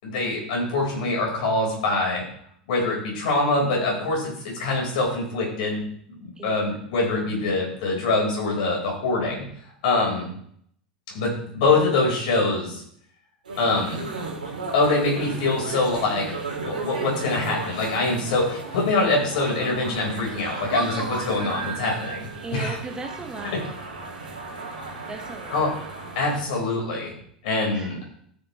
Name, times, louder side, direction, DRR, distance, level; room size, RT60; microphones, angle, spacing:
voice 1, 0.0-2.3 2.7-5.8 6.2-9.5 9.8-10.3 11.1-12.8 13.6-14.1 14.7-22.8 23.4-23.6 25.5-25.7 26.1-27.1 27.4-28.0, left 3 dB, 60° left, -1 dB, 4.3 m, -24 dB
sound 1, 13.4-26.4, right 3 dB, 75° right, 2.4 m, -34 dB
voice 2, 22.4-23.7 25.1-25.6 27.7-27.9, right 3 dB, 15° right, 4 dB, 1.3 m, -36 dB
13.0 x 7.2 x 3.1 m, 0.67 s
figure-of-eight pair, 85°, 5 cm